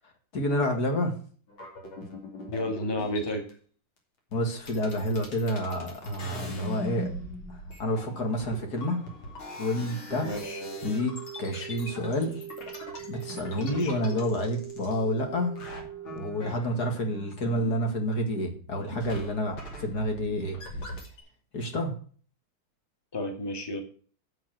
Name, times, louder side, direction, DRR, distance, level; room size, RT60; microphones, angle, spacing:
voice 1, 0.3-1.1 4.3-7.1 7.5-9.0 9.6-10.3 10.8-12.4 13.1-15.9 16.1-20.6 21.5-21.9, left 1 dB, 50° left, 3 dB, 2.5 m, -29 dB
sound 1, 1.5-3.5 4.3-4.4 4.6-15.3 15.6-18.2 18.5-21.2, left 1 dB, 80° left, 3.6 m, -41 dB
voice 2, 2.5-3.4 10.2-10.6 13.5-14.0 23.1-23.8, left 1 dB, 10° left, 3 dB, 2.0 m, -32 dB
sound 2, 10.1-16.2, right 11 dB, 55° right, 0.8 m, -42 dB
8.1 x 7.6 x 6.2 m, 0.43 s
omnidirectional pair, 2.2 m